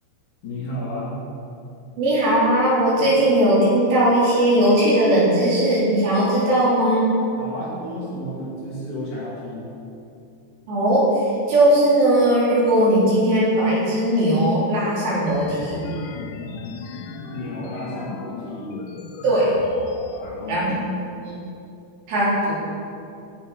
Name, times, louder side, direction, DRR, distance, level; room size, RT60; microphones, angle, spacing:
voice 1, 0.4-1.2 7.4-9.7 17.3-18.7 20.2-20.7, equal, 50° left, -7 dB, 3.3 m, -32 dB
voice 2, 2.0-7.2 10.7-15.9 19.2-19.5 20.5-20.7 21.2-21.4 22.1-22.5, right 1 dB, 65° right, -7 dB, 5.5 m, -18 dB
sound 1, 15.3-20.3, left 5 dB, 80° left, 3.0 m, -36 dB
16.0 x 8.5 x 4.8 m, 2.6 s
omnidirectional pair, 5.4 m